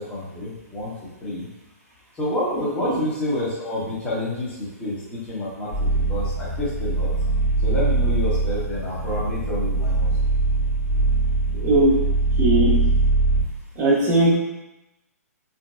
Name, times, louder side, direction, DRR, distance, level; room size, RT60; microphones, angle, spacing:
voice 1, 0.0-1.5 2.1-7.1 7.6-10.1, left 1 dB, 15° left, -9 dB, 0.9 m, -28 dB
sound 1, 5.7-13.4, right 2 dB, 65° left, 1.4 m, -22 dB
voice 2, 11.5-12.0 12.4-12.9 13.8-14.4, right 1 dB, 20° right, -9 dB, 0.7 m, -19 dB
3.7 x 2.7 x 2.4 m, 0.94 s
figure-of-eight pair, 120°, 9 cm